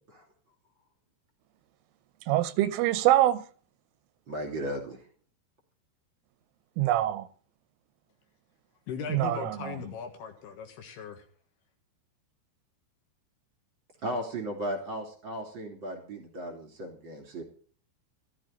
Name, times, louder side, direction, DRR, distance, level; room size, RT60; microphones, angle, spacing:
voice 1, 2.3-3.4 6.8-7.3 9.1-9.8, right 14 dB, 90° right, 3.4 m, -24 dB
voice 2, 4.3-5.0 14.0-17.4, equal, 30° right, 2.8 m, -36 dB
voice 3, 8.9-11.2, left 6 dB, 65° left, 3.2 m, -38 dB
14.5 x 13.5 x 3.8 m
omnidirectional pair, 5.7 m